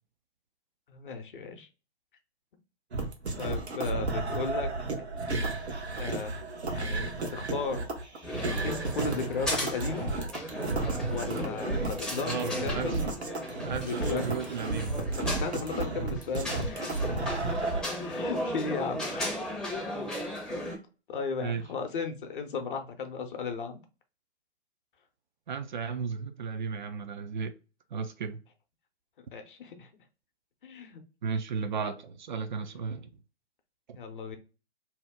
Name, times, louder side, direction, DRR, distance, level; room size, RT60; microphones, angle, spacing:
voice 1, 0.9-1.7 3.4-4.7 5.9-6.3 6.7-8.0 8.6-10.1 11.0-13.1 13.8-14.2 15.2-17.0 18.0-19.4 20.6-20.8 21.1-23.8 29.3-29.9 30.6-31.0 33.9-34.4, left 5 dB, 50° left, 0.7 m, -35 dB
sound 1, 2.9-17.8, right 2 dB, 75° right, 0.9 m, -33 dB
sound 2, 8.2-20.8, equal, ahead, 0.6 m, -36 dB
voice 2, 12.2-13.0 13.6-14.9 21.4-21.6 25.5-27.5 27.9-28.4 31.2-33.1 33.9-34.0, right 6 dB, 45° right, 0.4 m, -34 dB
2.8 x 2.0 x 3.4 m
figure-of-eight pair, 120°, 33 cm